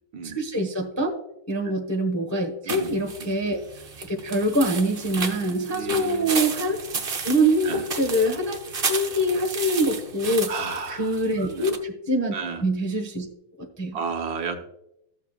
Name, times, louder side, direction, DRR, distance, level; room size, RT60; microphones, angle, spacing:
voice 1, 0.2-1.1 1.5-3.6 4.0-6.8 7.2-10.5 10.9-12.3 12.6-13.3 13.6-14.0, right 1 dB, 15° left, 2 dB, 0.6 m, -24 dB
voice 2, 2.6-3.3 5.7-6.3 7.6-7.9 10.5-11.8 12.3-12.6 13.9-14.7, right 5 dB, 70° right, 4 dB, 1.7 m, -33 dB
sound 1, 2.7-11.8, right 4 dB, 45° right, 0.8 m, -33 dB
14.5 x 7.1 x 2.4 m, 0.80 s
omnidirectional pair, 2.2 m